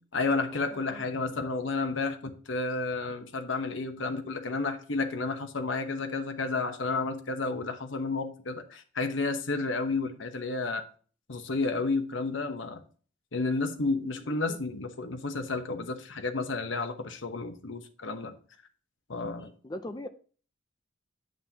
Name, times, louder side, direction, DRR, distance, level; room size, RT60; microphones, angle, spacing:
voice 1, 0.0-10.8 11.3-12.8 13.3-18.3 19.1-19.5, left 3 dB, 75° left, 0.9 m, -31 dB
voice 2, 0.5-1.1 14.1-14.6 19.4-20.1, left 1 dB, 20° left, 0.4 m, -42 dB
9.4 x 7.5 x 2.8 m
head